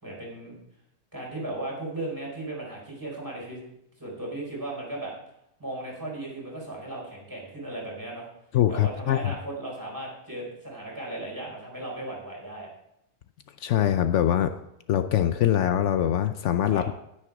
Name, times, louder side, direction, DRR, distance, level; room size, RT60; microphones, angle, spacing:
voice 1, 0.0-0.6 1.1-3.6 4.0-5.1 5.6-8.3 8.7-12.7 16.7-16.9, right 2 dB, 15° right, -3 dB, 4.4 m, -36 dB
voice 2, 8.5-9.3 13.6-14.5 14.9-17.0, left 11 dB, 75° left, 9 dB, 0.9 m, -23 dB
10.0 x 10.0 x 4.8 m, 0.79 s
omnidirectional pair, 1.3 m